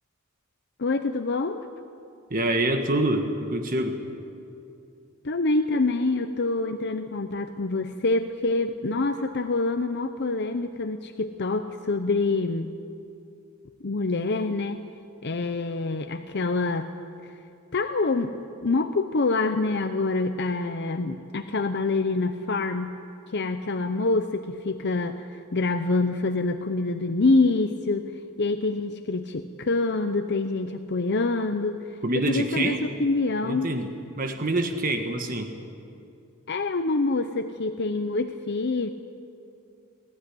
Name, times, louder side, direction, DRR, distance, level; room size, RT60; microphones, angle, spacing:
voice 1, 0.8-1.6 5.2-12.7 13.8-14.8 15.2-16.9 17.7-18.3 18.6-23.0 23.3-28.1 28.4-31.8 32.1-33.7 36.5-38.9, left 3 dB, 50° left, 8 dB, 0.7 m, -26 dB
voice 2, 2.3-4.0 32.0-32.9 33.4-35.5, right 1 dB, 40° right, 5 dB, 1.4 m, -26 dB
21.5 x 15.5 x 9.9 m, 2.6 s
head